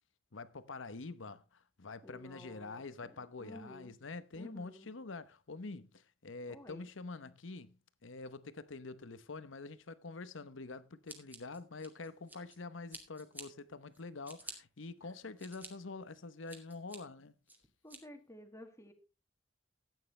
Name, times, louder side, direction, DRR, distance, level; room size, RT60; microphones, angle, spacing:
voice 1, 0.3-7.8 8.0-17.4, left 3 dB, 85° left, 0.9 m, -46 dB
voice 2, 2.0-3.9 4.3-4.9 6.5-6.9 15.0-15.1 17.8-18.9, left 1 dB, 15° left, 1.8 m, -53 dB
Scissors, 11.1-12.6 12.9-13.4 13.9-14.5 15.1-15.7 16.1-17.0 17.5-18.0, right 2 dB, 10° right, 2.3 m, -49 dB
14.5 x 9.3 x 3.2 m
head